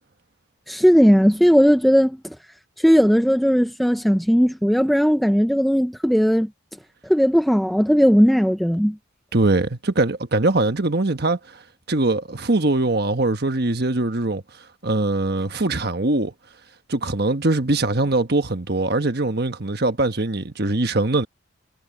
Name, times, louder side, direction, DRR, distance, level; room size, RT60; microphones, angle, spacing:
voice 1, 0.7-2.2 2.8-6.5 7.1-9.0, equal, ahead, 0.5 m, -17 dB
voice 2, 9.3-11.4 11.9-14.4 14.8-16.3 16.9-21.2, right 2 dB, 50° right, 1.3 m, -22 dB
head